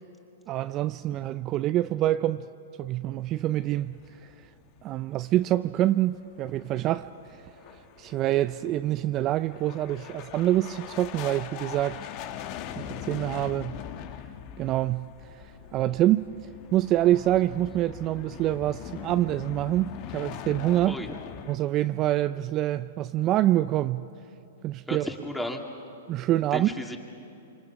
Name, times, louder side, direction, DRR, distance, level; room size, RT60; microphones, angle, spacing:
voice 1, 0.5-2.4 2.8-3.9 4.8-7.4 8.0-12.0 12.8-13.8 14.6-16.3 16.7-21.0 21.5-24.1 24.6-25.1 26.1-26.7, right 14 dB, 35° right, 0.4 m, -26 dB
sound 1, 3.2-4.9 5.2-5.3 5.7-5.8 6.2-21.6, left 10 dB, 45° left, 1.2 m, -41 dB
voice 2, 20.9-21.2 24.9-25.6 26.5-27.0, left 1 dB, 5° left, 2.4 m, -34 dB
27.0 x 25.0 x 6.0 m
hypercardioid pair, 120°, 0 cm